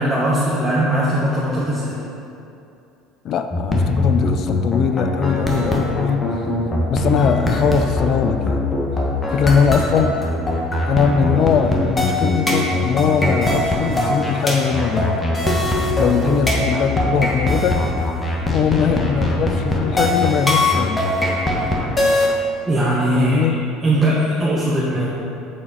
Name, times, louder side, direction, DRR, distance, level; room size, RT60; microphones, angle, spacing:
voice 1, 0.0-2.0 22.7-23.5 23.8-25.1, right 1 dB, 20° right, -6 dB, 1.2 m, -19 dB
voice 2, 3.2-6.5 6.9-8.6 9.3-10.2 10.9-15.2 16.0-17.8 18.5-21.1 23.1-23.5, left 7 dB, 55° left, 8 dB, 0.3 m, -20 dB
sound 1, 3.5-22.3, left 1 dB, 20° left, 1.3 m, -20 dB
7.6 x 4.1 x 4.2 m, 2.7 s
hypercardioid pair, 80°, 0 cm